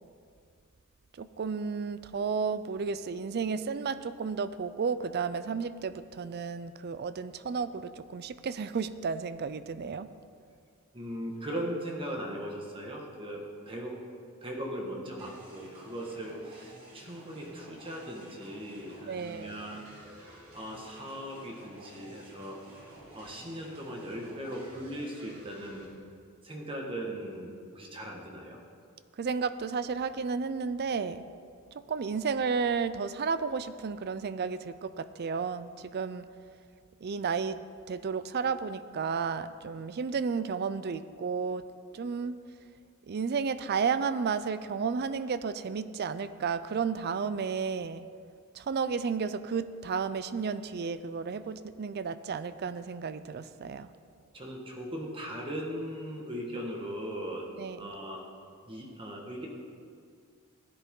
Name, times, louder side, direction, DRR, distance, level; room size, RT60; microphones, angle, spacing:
voice 1, 1.2-10.1 19.1-19.6 29.2-31.2 31.7-36.2 37.0-37.6 37.9-41.6 41.9-42.4 43.1-48.0 48.5-53.9 57.6-57.9, right 5 dB, 50° right, 14 dB, 0.4 m, -32 dB
voice 2, 10.9-14.0 14.4-20.2 20.5-22.6 23.1-25.9 26.4-28.6 54.3-57.5 57.7-58.3 58.7-59.5, equal, 25° right, 0 dB, 1.6 m, -39 dB
sound 1, 15.2-25.8, right 1 dB, 70° right, 3.5 m, -52 dB
16.0 x 10.5 x 3.7 m, 2.2 s
head